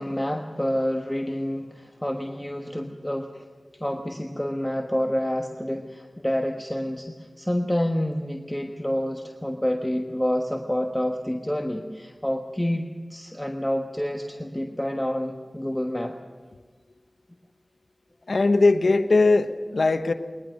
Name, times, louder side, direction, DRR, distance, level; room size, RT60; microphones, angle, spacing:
voice 1, 0.0-3.5 3.8-16.2, equal, 10° left, 3 dB, 1.3 m, -28 dB
voice 2, 18.3-20.1, left 3 dB, 85° left, 8 dB, 1.0 m, -20 dB
21.0 x 20.0 x 6.5 m, 1.4 s
wide cardioid pair, 45°, 0 cm